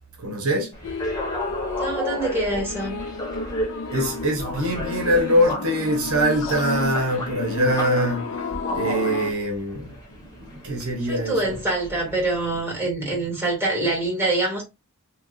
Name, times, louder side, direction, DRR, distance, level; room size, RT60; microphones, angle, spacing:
voice 1, 0.2-0.7 3.9-8.2 8.7-11.6, equal, 70° right, 1.2 m, -23 dB
sound 1, 0.7-12.6, equal, 15° left, 1.3 m, -33 dB
sound 2, 0.8-9.3, left 4 dB, 60° left, 0.5 m, -32 dB
voice 2, 1.7-3.0 11.0-14.6, right 2 dB, 10° right, 2.5 m, -25 dB
4.6 x 3.0 x 2.6 m
head